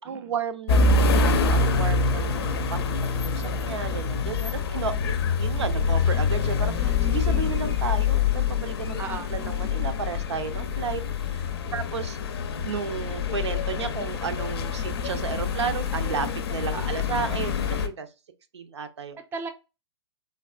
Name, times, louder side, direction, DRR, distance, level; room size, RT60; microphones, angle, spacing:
voice 1, 0.0-11.5 11.7-18.1 18.5-19.2, right 6 dB, 75° right, 0.5 m, -33 dB
sound 1, 0.7-17.9, left 4 dB, 60° left, 0.5 m, -25 dB
voice 2, 9.0-9.3 11.7-11.8 16.7-17.0 19.3-19.5, right 5 dB, 15° right, 0.4 m, -36 dB
3.4 x 2.3 x 2.3 m
hypercardioid pair, 120°, 14 cm